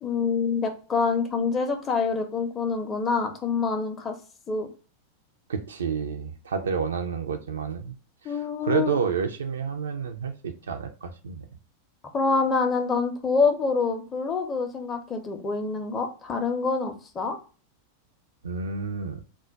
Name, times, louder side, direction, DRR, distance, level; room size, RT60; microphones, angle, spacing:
voice 1, 0.0-4.2 4.5-4.7 8.2-9.0 12.1-17.4, left 4 dB, 25° left, 0.5 m, -26 dB
voice 2, 5.5-8.0 8.2-11.5 18.4-19.2, right 6 dB, 65° right, 0.4 m, -29 dB
2.2 x 2.1 x 3.7 m
figure-of-eight pair, 90°, 0 cm